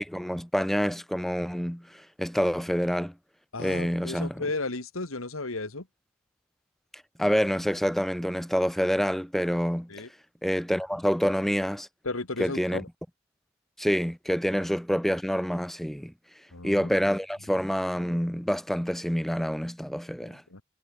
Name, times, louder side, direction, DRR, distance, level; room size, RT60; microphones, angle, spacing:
voice 1, 0.0-3.1 3.6-4.4 7.2-9.9 10.4-11.9 12.4-12.8 13.8-16.1 16.6-20.4, equal, ahead, 1.0 m, -27 dB
voice 2, 3.5-5.9 9.9-10.1 12.0-12.9 16.5-17.1 20.2-20.6, left 2 dB, 85° left, 2.3 m, -34 dB
head